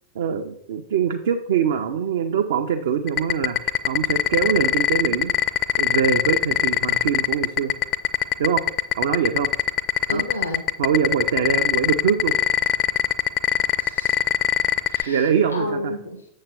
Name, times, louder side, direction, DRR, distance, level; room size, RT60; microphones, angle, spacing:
voice 1, 0.1-5.3 5.8-7.7 8.4-8.6 9.0-9.5 10.1-10.2 10.8-12.4 15.1-15.9, right 7 dB, 60° right, 5 dB, 0.5 m, -23 dB
sound 1, 3.1-15.0, left 11 dB, 35° left, 0.5 m, -20 dB
voice 2, 10.1-10.7 13.8-14.2 14.8-16.3, left 1 dB, 80° left, 4 dB, 0.8 m, -31 dB
7.4 x 7.1 x 3.4 m, 0.74 s
figure-of-eight pair, 90°, 0 cm